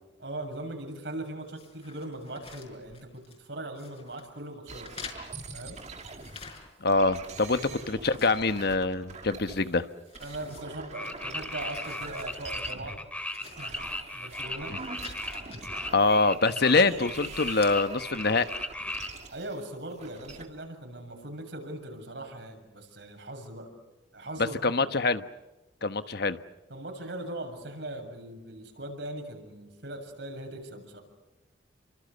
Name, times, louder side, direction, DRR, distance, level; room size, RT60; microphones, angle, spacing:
voice 1, 0.2-4.9 5.5-5.8 7.6-7.9 10.2-13.0 13.6-13.9 14.1-14.8 19.3-23.7 24.1-24.9 26.7-31.0, right 1 dB, 65° right, 4 dB, 7.2 m, -40 dB
sound 1, 1.5-3.5 3.7-4.3 4.8-7.0 7.3-9.2 9.6-9.7 10.1-11.2 11.5-12.4 12.7-12.8 13.2-14.4 14.8-15.6 16.3-16.8 17.2-17.8, left 5 dB, 35° left, 6.0 m, -49 dB
sound 2, 4.7-6.5 6.9-9.8 10.1-13.1 13.4-16.4 16.7-20.5, right 3 dB, 40° right, 2.4 m, -44 dB
voice 2, 6.8-7.6 7.9-9.9 14.7-14.8 15.9-18.5 24.4-25.2 25.8-26.4, left 3 dB, 60° left, 10 dB, 1.2 m, -25 dB
sound 3, 10.9-19.1, left 1 dB, 5° left, 2.6 m, -36 dB
30.0 x 25.0 x 6.8 m, 1.1 s
head